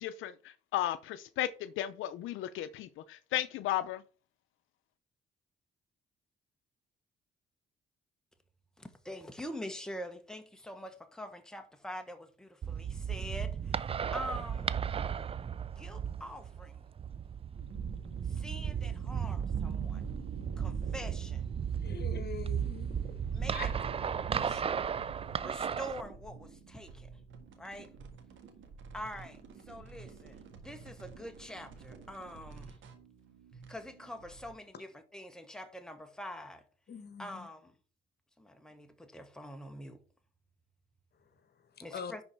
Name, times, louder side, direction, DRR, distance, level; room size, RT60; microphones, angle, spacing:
voice 1, 0.0-4.0, left 12 dB, 85° left, 0.5 m, -35 dB
voice 2, 8.8-14.7 15.7-16.8 18.3-20.0 20.6-21.5 23.3-23.7 24.3-24.8 25.4-27.2 27.6-27.9 28.9-32.8 33.7-36.7 37.2-37.7 38.4-40.0 41.8-42.2, equal, 5° left, 1.2 m, -45 dB
sound 1, 12.6-26.0, right 7 dB, 30° right, 0.4 m, -35 dB
sound 2, 17.5-34.5, right 5 dB, 75° right, 1.6 m, -47 dB
voice 3, 21.8-23.0 23.5-23.6 36.9-37.4 41.9-42.1, left 6 dB, 55° left, 1.3 m, -42 dB
10.5 x 4.1 x 4.5 m
cardioid pair, 90°, 20 cm